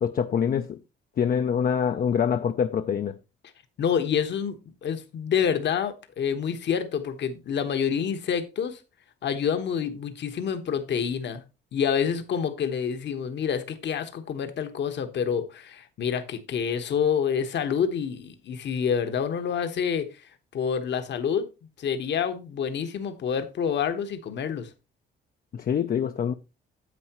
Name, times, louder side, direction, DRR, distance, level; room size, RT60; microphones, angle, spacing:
voice 1, 0.0-0.8 1.2-3.2 25.5-26.3, left 7 dB, 45° left, 0.6 m, -25 dB
voice 2, 3.8-8.8 9.2-11.4 11.7-20.1 20.5-21.5 21.8-24.7, left 7 dB, 65° left, 1.3 m, -27 dB
9.8 x 7.8 x 3.0 m
cardioid pair, 90°, 20 cm